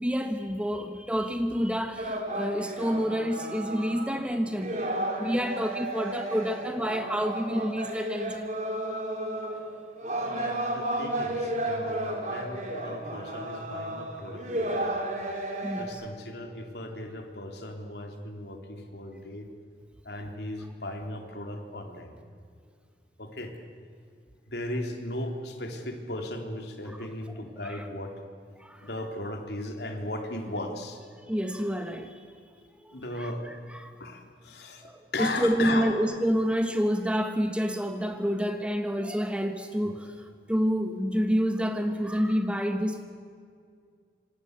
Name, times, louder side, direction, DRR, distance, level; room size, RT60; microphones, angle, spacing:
voice 1, 0.0-4.8 5.2-8.5 15.6-16.0 27.6-27.9 28.6-28.9 31.2-32.2 32.8-33.3 33.8-33.9 34.8-43.0, equal, 5° right, 7 dB, 1.3 m, -28 dB
sound 1, 2.0-4.2 4.5-15.8, right 1 dB, 40° right, 4.3 m, -33 dB
voice 2, 10.2-15.0 15.8-19.5 20.0-22.2 23.2-23.5 24.5-28.1 28.8-31.0 32.9-33.4 34.0-35.9 39.8-39.9, left 1 dB, 70° left, 4 dB, 3.4 m, -37 dB
27.0 x 26.0 x 8.3 m, 2.2 s
head